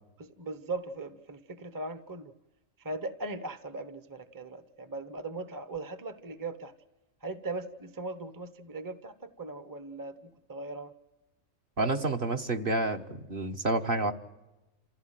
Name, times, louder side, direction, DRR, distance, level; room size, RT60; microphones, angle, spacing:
voice 1, 0.2-2.3 2.8-6.7 7.2-10.9, right 2 dB, 20° right, 11 dB, 0.9 m, -39 dB
voice 2, 11.8-14.1, right 2 dB, 45° right, 4 dB, 1.5 m, -29 dB
28.0 x 16.0 x 9.1 m, 1.0 s
omnidirectional pair, 1.3 m